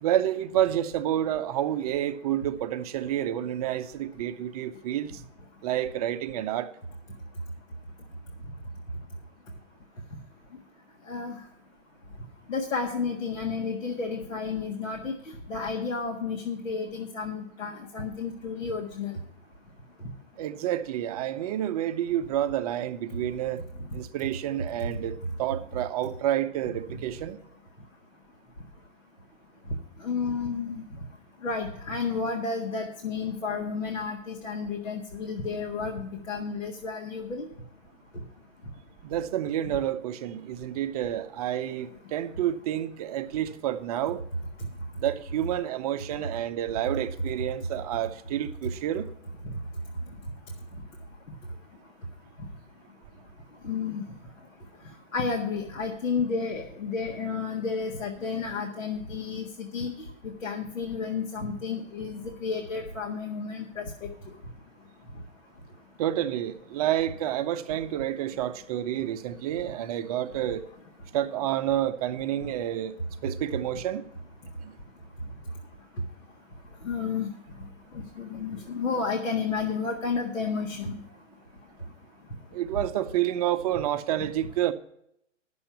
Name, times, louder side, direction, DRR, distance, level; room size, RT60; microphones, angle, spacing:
voice 1, 0.0-5.1 5.6-6.7 20.4-23.6 23.9-27.4 39.0-44.2 45.0-49.1 66.0-70.6 71.1-73.0 73.2-74.1 74.6-74.7 82.5-84.7, right 12 dB, 30° right, 0.6 m, -29 dB
voice 2, 11.1-11.4 12.5-15.1 15.5-19.1 30.0-30.8 31.4-37.5 53.6-54.0 55.1-59.9 60.4-63.9 76.8-77.3 77.9-81.0, left 5 dB, 75° left, 1.8 m, -31 dB
10.0 x 7.0 x 7.0 m
hypercardioid pair, 130°, 39 cm